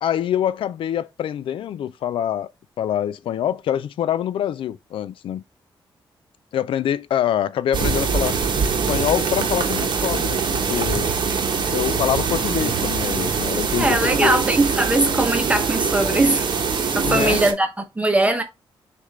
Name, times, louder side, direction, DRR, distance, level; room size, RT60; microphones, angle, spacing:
voice 1, 0.0-2.5 2.8-5.4 6.5-8.3 8.9-11.1 11.7-14.4 17.0-17.4, left 10 dB, 75° left, 0.4 m, -25 dB
sound 1, 7.7-17.5, right 5 dB, 60° right, 0.9 m, -23 dB
voice 2, 13.8-16.5 16.9-18.4, right 2 dB, 15° right, 0.8 m, -20 dB
6.5 x 2.5 x 3.2 m
cardioid pair, 100°, 9 cm